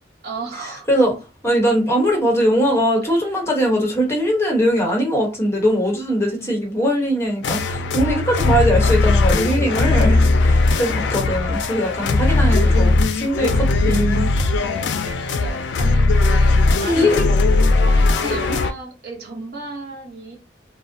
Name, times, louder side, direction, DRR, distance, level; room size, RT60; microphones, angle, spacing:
voice 1, 0.2-0.9 3.0-3.2 6.4-6.6 10.9-11.2 12.3-12.9 15.0-20.4, right 3 dB, 60° right, 1.0 m, -35 dB
voice 2, 1.4-14.3 16.8-17.2 18.5-18.6, equal, 15° left, 0.9 m, -20 dB
sound 1, 7.4-18.7, left 3 dB, 75° left, 0.3 m, -18 dB
2.5 x 2.0 x 2.6 m
head